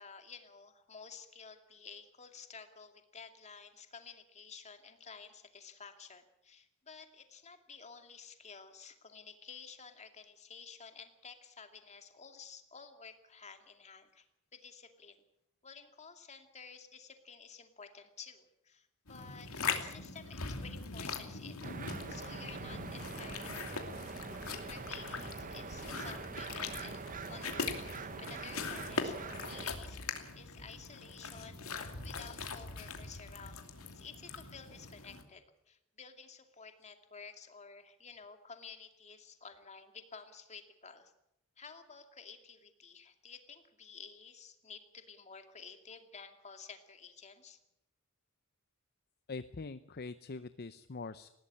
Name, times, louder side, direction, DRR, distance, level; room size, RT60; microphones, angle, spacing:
voice 1, 0.0-14.3 14.5-15.2 15.6-21.7 22.1-24.3 24.7-41.1 41.6-47.6, left 5 dB, 30° left, 6 dB, 2.4 m, -52 dB
sound 1, 19.1-35.2, left 4 dB, 80° left, 2.7 m, -41 dB
sound 2, 21.6-29.7, right 4 dB, 40° right, 0.9 m, -44 dB
voice 2, 49.3-51.3, left 3 dB, 50° left, 12 dB, 0.7 m, -43 dB
19.5 x 17.0 x 8.6 m, 0.80 s
head